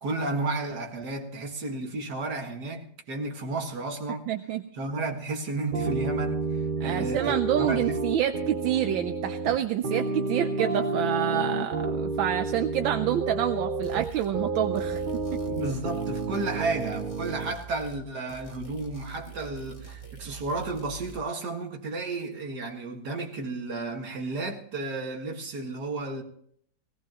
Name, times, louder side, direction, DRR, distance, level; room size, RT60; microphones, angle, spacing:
voice 1, 0.0-4.3 4.7-6.4 6.8-8.0 15.5-26.2, right 3 dB, 55° right, 2.3 m, -32 dB
voice 2, 4.3-4.6 6.8-15.4, right 11 dB, 75° right, 1.5 m, -28 dB
sound 1, 5.7-17.5, right 3 dB, 35° right, 0.8 m, -30 dB
sound 2, 13.8-14.3 14.7-18.0 18.3-21.2, right 7 dB, 20° left, 1.6 m, -44 dB
18.0 x 18.0 x 3.0 m
omnidirectional pair, 2.2 m